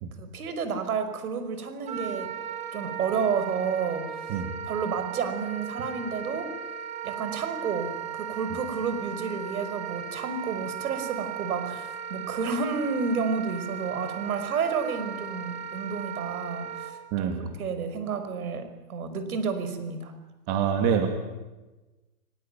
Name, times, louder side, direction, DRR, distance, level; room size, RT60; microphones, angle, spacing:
voice 1, 0.2-2.3 2.7-4.3 4.7-6.5 7.0-20.1, right 5 dB, 65° right, 9 dB, 5.6 m, -31 dB
Wind instrument woodwind instrument, 1.8-16.9, right 8 dB, 15° right, 2.0 m, -36 dB
voice 2, 17.1-17.5 20.5-21.1, right 7 dB, 30° right, 5 dB, 2.6 m, -26 dB
29.5 x 19.0 x 9.3 m, 1.1 s
hypercardioid pair, 155°, 47 cm